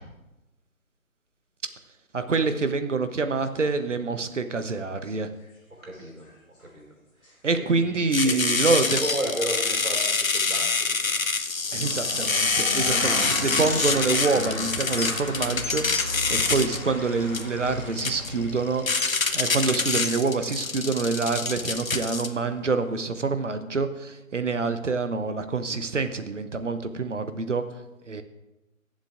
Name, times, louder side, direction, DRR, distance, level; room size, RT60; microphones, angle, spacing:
voice 1, 2.1-5.3 7.4-9.0 11.7-15.8 16.3-18.8 19.3-27.6 28.1-28.2, right 4 dB, 60° right, 9 dB, 0.9 m, -26 dB
sound 1, 5.4-5.5 5.8-6.3 6.6-6.7 7.2-7.3 7.6-7.7 9.3-9.5 10.1-10.3 10.7-10.8 11.7-23.0, left 1 dB, 10° left, 1.9 m, -36 dB
voice 2, 5.8-6.3 6.6-6.8 7.2-11.2 12.9-13.1, right 1 dB, 80° right, 0 dB, 4.4 m, -34 dB
sound 2, 8.1-22.3, left 4 dB, 75° left, 1.1 m, -26 dB
22.0 x 7.5 x 2.5 m, 1.0 s
figure-of-eight pair, 160°, 41 cm